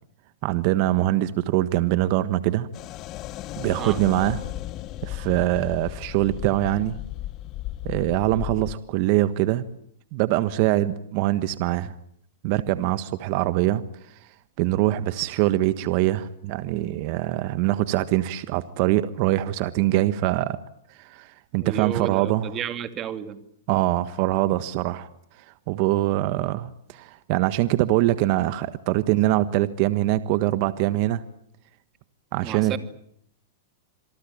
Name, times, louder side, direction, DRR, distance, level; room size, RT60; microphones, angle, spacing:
voice 1, 0.4-2.7 3.6-4.4 5.0-7.0 7.8-9.6 10.1-11.9 12.4-13.8 14.6-20.6 21.0-22.4 23.7-25.1 25.7-31.2 32.3-32.8, right 15 dB, 50° right, 13 dB, 1.4 m, -23 dB
sound 1, 2.7-8.8, left 14 dB, 40° left, 1.1 m, -35 dB
voice 2, 21.6-23.4 32.4-32.8, right 9 dB, 30° right, 10 dB, 2.6 m, -32 dB
27.0 x 23.0 x 8.7 m, 0.69 s
hypercardioid pair, 130°, 0 cm